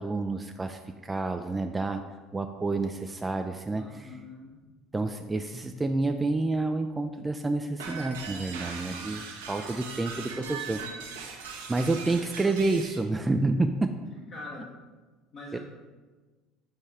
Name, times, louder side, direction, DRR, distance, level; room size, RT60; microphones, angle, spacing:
voice 1, 0.0-2.0 2.3-4.1 4.9-10.8 11.7-13.9 15.5-15.6, right 2 dB, 15° right, 6 dB, 0.4 m, -29 dB
voice 2, 3.7-4.6 10.3-11.0 12.4-12.6 14.3-14.8 15.3-15.6, left 2 dB, 50° left, -5 dB, 1.2 m, -44 dB
sound 1, 7.8-13.0, right 5 dB, 75° right, 0.9 m, -40 dB
7.3 x 5.2 x 3.3 m, 1.3 s
figure-of-eight pair, 65°, 0 cm